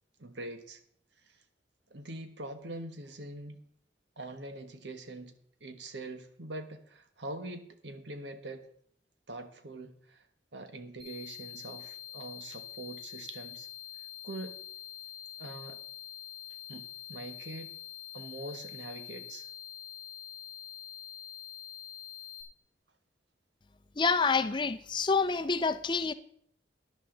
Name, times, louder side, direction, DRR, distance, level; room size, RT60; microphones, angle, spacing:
voice 1, 0.2-0.8 1.3-1.4 1.9-3.7 4.2-5.3 5.6-8.6 9.3-10.2 10.5-13.7 14.2-14.6 15.4-15.8 16.7-17.8 18.1-19.5, right 2 dB, 80° right, 1.3 m, -43 dB
sound 1, 11.0-22.4, left 10 dB, 25° right, 3.5 m, -45 dB
voice 2, 24.0-26.1, left 4 dB, 25° left, 0.5 m, -27 dB
13.0 x 10.5 x 3.9 m
head